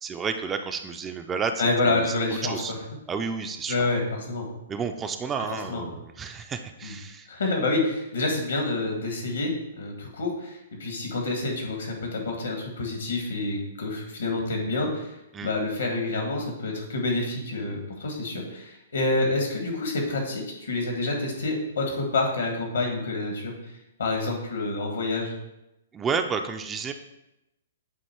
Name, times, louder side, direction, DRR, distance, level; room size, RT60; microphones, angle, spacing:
voice 1, 0.0-2.1 2.4-2.7 3.1-3.9 4.7-7.3 15.3-15.5 25.9-26.9, right 5 dB, 15° right, 6 dB, 0.4 m, -31 dB
voice 2, 1.6-2.8 3.7-4.5 5.7-5.9 6.8-7.0 7.3-15.1 15.4-23.5 24.0-25.3, left 2 dB, 75° left, 1 dB, 1.8 m, -28 dB
8.0 x 2.9 x 4.5 m, 0.89 s
figure-of-eight pair, 120°, 0 cm